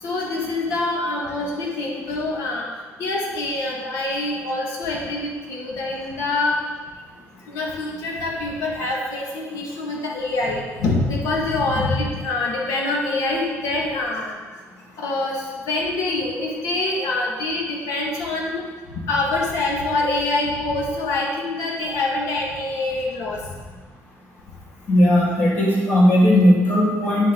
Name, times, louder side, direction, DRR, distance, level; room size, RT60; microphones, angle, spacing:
voice 1, 0.0-2.7 3.0-6.6 7.5-14.3 15.0-18.6 19.1-23.4, left 2 dB, 80° left, -1 dB, 2.0 m, -25 dB
voice 2, 24.9-27.3, left 1 dB, 45° left, -4 dB, 2.4 m, -16 dB
8.8 x 7.2 x 3.9 m, 1.4 s
cardioid pair, 175°, 6 cm